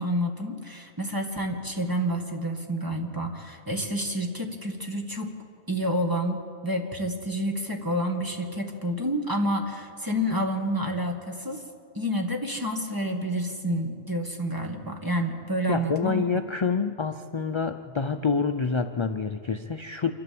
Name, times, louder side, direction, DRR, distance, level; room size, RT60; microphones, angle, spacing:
voice 1, 0.0-5.3 5.7-11.6 12.0-16.2, equal, 15° right, 3 dB, 1.8 m, -29 dB
voice 2, 15.7-20.1, left 5 dB, 45° left, 8 dB, 0.4 m, -27 dB
27.5 x 12.5 x 7.7 m, 2.5 s
omnidirectional pair, 1.2 m